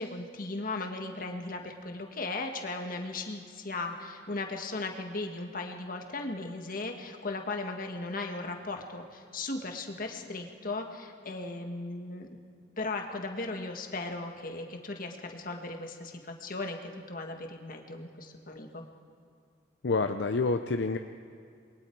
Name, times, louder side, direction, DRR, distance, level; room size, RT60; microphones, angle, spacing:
voice 1, 0.0-12.3 12.8-18.8, left 2 dB, 50° left, 4 dB, 1.7 m, -37 dB
voice 2, 19.8-21.0, left 3 dB, 70° left, 7 dB, 0.6 m, -28 dB
28.0 x 21.5 x 4.7 m, 2.3 s
head